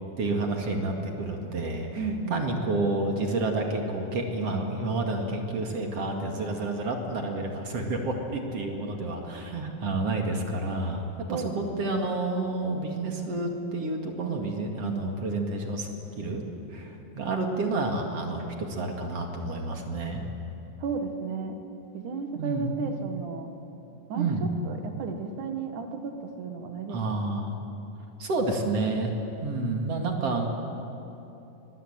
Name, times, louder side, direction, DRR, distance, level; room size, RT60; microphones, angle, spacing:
voice 1, 0.2-2.0 2.3-11.0 11.3-15.9 16.2-16.4 16.7-20.2 22.3-22.7 24.1-24.5 26.9-27.6 28.2-29.1 29.4-30.5, right 2 dB, 50° right, 2 dB, 2.9 m, -29 dB
voice 2, 2.0-2.4 11.3-12.4 20.8-21.6 21.9-23.5 24.1-27.3, right 5 dB, 65° right, 5 dB, 2.9 m, -34 dB
24.5 x 21.5 x 8.8 m, 2.9 s
omnidirectional pair, 3.9 m